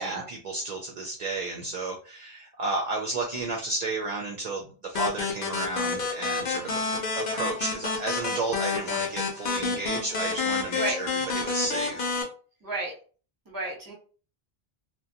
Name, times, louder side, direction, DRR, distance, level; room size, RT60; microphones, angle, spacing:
voice 1, 0.0-6.8 7.1-11.1 11.3-12.2, right 2 dB, 55° right, 1 dB, 0.5 m, -32 dB
sound 1, 4.9-12.2, left 4 dB, 60° left, 0.8 m, -29 dB
voice 2, 12.6-12.9 13.5-13.9, right 2 dB, 20° right, -2 dB, 0.8 m, -31 dB
2.4 x 2.1 x 2.7 m, 0.39 s
omnidirectional pair, 1.0 m